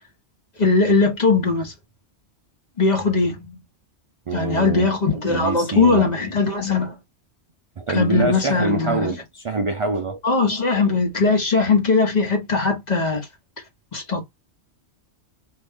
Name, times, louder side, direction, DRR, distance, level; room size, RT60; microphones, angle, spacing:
voice 1, 0.6-1.7 2.8-3.6 4.3-6.9 7.9-9.1 10.2-13.3 13.9-14.2, left 4 dB, 40° left, 1.2 m, -20 dB
voice 2, 4.3-4.9 5.3-6.1 7.8-10.2, right 3 dB, 55° right, 0.3 m, -25 dB
2.9 x 2.5 x 3.5 m
omnidirectional pair, 1.2 m